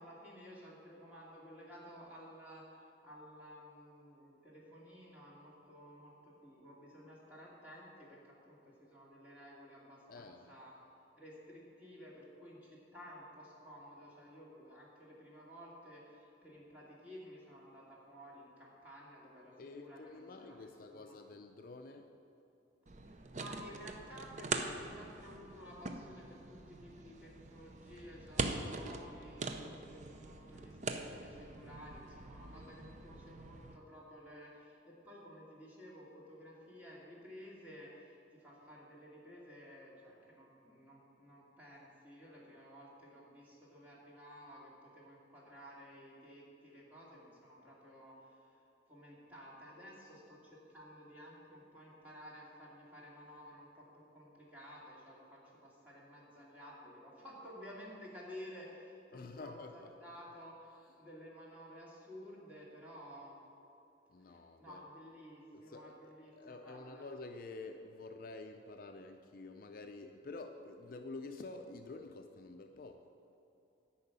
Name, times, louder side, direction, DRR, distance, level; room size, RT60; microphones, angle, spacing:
voice 1, 0.0-10.8 11.1-21.2 23.0-48.6 48.9-53.9 54.1-63.3 64.3-67.1, equal, 10° right, -6 dB, 2.4 m, -54 dB
voice 2, 10.1-10.5 19.6-22.1 59.1-59.9 64.1-64.8 65.5-73.1, left 3 dB, 50° left, 5 dB, 0.5 m, -49 dB
sound 1, 22.9-33.8, right 3 dB, 40° right, 0.6 m, -43 dB
10.5 x 5.5 x 8.3 m, 2.9 s
head